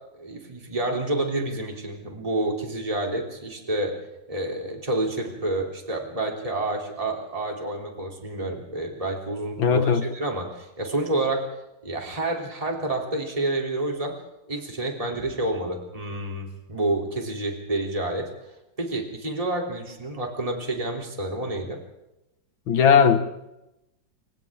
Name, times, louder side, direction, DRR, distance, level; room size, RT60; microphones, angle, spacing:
voice 1, 0.2-4.0 4.3-9.9 10.1-11.5 11.8-14.2 14.5-18.3 18.8-21.8, right 2 dB, 15° right, 3.3 m, -29 dB
voice 2, 9.6-10.1 22.7-23.2, left 7 dB, 80° left, 2.3 m, -18 dB
30.0 x 27.0 x 3.7 m
omnidirectional pair, 2.1 m